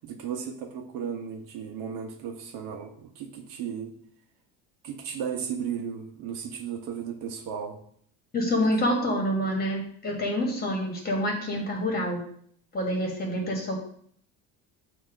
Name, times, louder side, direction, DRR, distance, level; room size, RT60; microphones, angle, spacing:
voice 1, 0.0-3.9 4.8-7.8, right 7 dB, 70° right, 3 dB, 1.1 m, -35 dB
voice 2, 8.3-12.2 12.7-13.8, equal, 25° left, 0 dB, 1.7 m, -27 dB
8.0 x 2.9 x 4.9 m, 0.63 s
cardioid pair, 140°, 35 cm